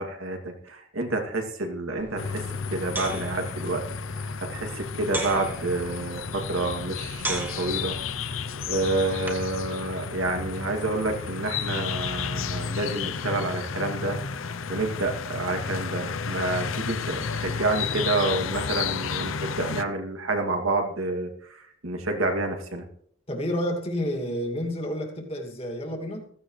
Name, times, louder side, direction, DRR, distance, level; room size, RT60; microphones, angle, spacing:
voice 1, 0.0-2.4 2.7-3.8 4.5-14.2 14.7-22.9, right 2 dB, 90° right, 3 dB, 2.6 m, -29 dB
sound 1, 2.0-9.6, right 1 dB, 10° right, 1.8 m, -39 dB
sound 2, 2.2-19.8, left 6 dB, 85° left, 0.7 m, -32 dB
voice 2, 23.3-26.3, equal, 30° left, 3 dB, 2.4 m, -30 dB
15.5 x 15.5 x 3.3 m, 0.62 s
head